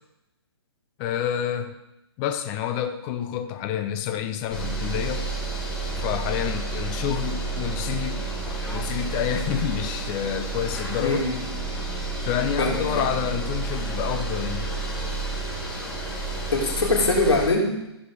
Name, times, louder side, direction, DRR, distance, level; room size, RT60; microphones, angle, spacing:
voice 1, 1.0-1.8 2.2-5.3 6.0-8.2 8.6-11.2 12.2-14.7, left 9 dB, 25° left, 8 dB, 0.7 m, -28 dB
sound 1, 4.5-17.5, right 3 dB, 5° left, 1.9 m, -30 dB
voice 2, 11.0-11.4 12.6-13.1 16.5-17.7, left 2 dB, 80° left, -1 dB, 3.1 m, -22 dB
14.5 x 5.2 x 4.8 m, 0.91 s
hypercardioid pair, 150°, 14 cm